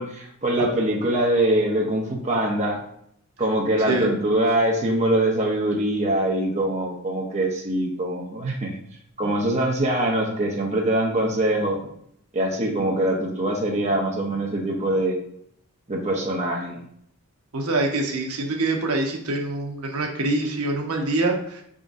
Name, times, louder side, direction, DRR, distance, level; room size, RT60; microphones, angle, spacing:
voice 1, 0.0-2.8 3.4-8.8 9.2-11.8 12.3-15.2 15.9-16.8, right 1 dB, 30° right, 0 dB, 0.6 m, -23 dB
voice 2, 17.5-21.4, right 2 dB, 90° right, 2 dB, 0.8 m, -24 dB
5.1 x 3.7 x 2.5 m, 0.70 s
head